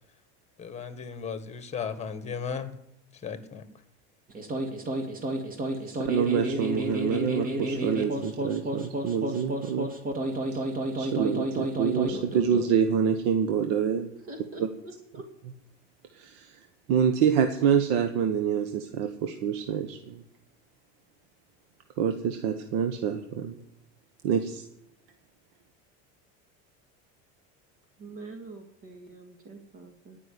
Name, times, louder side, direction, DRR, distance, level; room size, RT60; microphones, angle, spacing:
voice 1, 0.6-2.7 3.2-3.6, left 6 dB, 20° left, 10 dB, 1.6 m, -35 dB
sound 1, 4.3-12.7, right 1 dB, 25° right, 2.3 m, -31 dB
voice 2, 5.9-9.9 10.5-10.6 11.0-14.1 16.1-16.6 16.9-20.2 22.0-23.5 24.2-24.6, right 7 dB, 70° right, 6 dB, 1.3 m, -26 dB
voice 3, 14.2-15.3 28.0-30.2, right 2 dB, 45° right, 4 dB, 2.4 m, -45 dB
17.5 x 6.0 x 9.9 m, 0.78 s
supercardioid pair, 130°, 31 cm